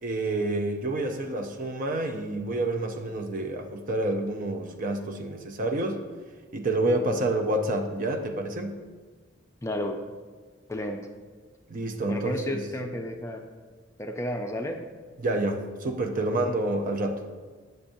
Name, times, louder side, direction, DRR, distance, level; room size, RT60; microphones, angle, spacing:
voice 1, 0.0-6.0 6.5-8.8 11.7-12.6 15.2-17.5, right 2 dB, 45° right, 5 dB, 0.6 m, -28 dB
voice 2, 9.6-10.0 10.7-11.0 12.1-13.4 14.0-14.8, left 1 dB, 15° left, 3 dB, 0.4 m, -32 dB
8.6 x 6.6 x 2.6 m, 1.5 s
head